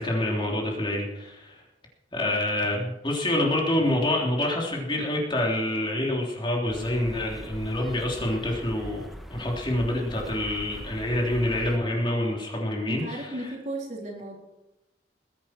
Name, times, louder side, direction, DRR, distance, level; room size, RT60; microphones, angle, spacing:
voice 1, 0.0-1.6 2.1-13.4, left 1 dB, 25° left, -1 dB, 3.3 m, -27 dB
sound 1, 6.7-11.8, equal, ahead, 1.4 m, -41 dB
voice 2, 12.9-14.3, right 1 dB, 40° right, -1 dB, 3.9 m, -35 dB
21.0 x 11.0 x 4.5 m, 0.95 s
head